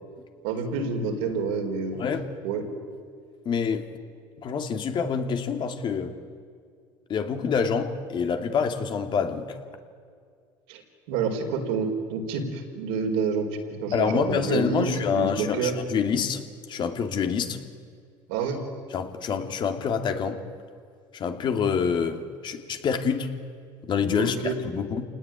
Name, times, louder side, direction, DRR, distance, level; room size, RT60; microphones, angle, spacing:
voice 1, 0.4-2.0 2.4-2.6 10.7-10.8 11.1-13.5 13.8-15.7 18.3-18.6 24.1-24.6, right 5 dB, 80° right, 4 dB, 4.5 m, -28 dB
voice 2, 1.9-2.3 3.4-3.9 4.4-6.2 7.1-9.6 13.9-16.4 16.7-17.6 18.9-20.4 21.1-23.3 23.8-25.0, left 6 dB, 50° left, 6 dB, 2.7 m, -27 dB
27.5 x 19.0 x 9.3 m, 2.1 s
supercardioid pair, 80°, 10 cm